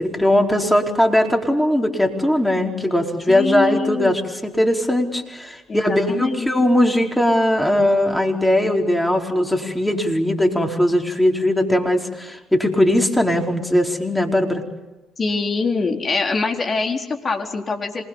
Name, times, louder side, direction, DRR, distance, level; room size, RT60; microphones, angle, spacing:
voice 1, 0.0-14.6, left 1 dB, 5° left, 2 dB, 4.6 m, -19 dB
voice 2, 3.3-4.1 5.7-6.5 15.2-18.0, left 4 dB, 40° left, 2 dB, 4.2 m, -24 dB
27.0 x 21.0 x 7.3 m, 1.1 s
hypercardioid pair, 55°, 0 cm